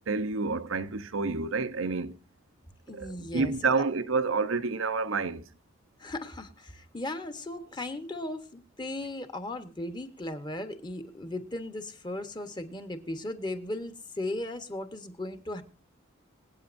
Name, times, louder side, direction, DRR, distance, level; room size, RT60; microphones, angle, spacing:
voice 1, 0.1-2.1 2.9-5.4, right 4 dB, 90° right, 0.8 m, -29 dB
voice 2, 2.9-3.8 6.0-15.6, left 1 dB, 20° left, 1.1 m, -37 dB
25.5 x 8.6 x 2.6 m
head